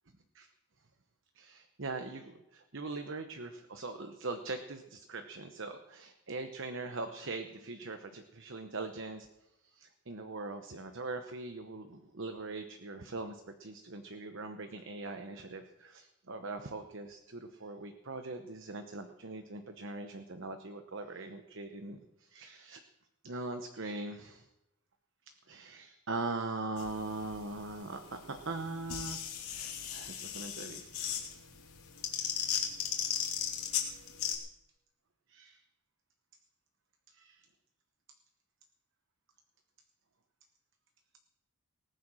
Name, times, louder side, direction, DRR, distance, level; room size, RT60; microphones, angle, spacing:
voice 1, 1.3-9.3 9.6-22.8 23.2-24.5 25.5-31.3 35.3-35.6 37.1-37.5, right 3 dB, 55° right, 7 dB, 1.0 m, -41 dB
sound 1, 26.8-34.4, left 8 dB, 80° left, 3.0 m, -37 dB
18.5 x 9.3 x 6.3 m, 0.92 s
head